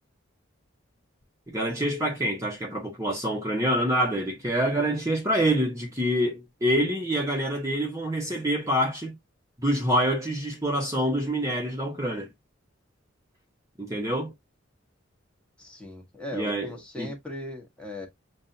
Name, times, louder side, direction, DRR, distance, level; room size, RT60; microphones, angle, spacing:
voice 1, 1.5-9.1 9.6-12.3 13.8-14.3 16.3-17.1, equal, 15° right, 1.1 m, -26 dB
voice 2, 15.6-18.1, left 2 dB, 5° left, 1.4 m, -38 dB
7.2 x 2.5 x 2.7 m
head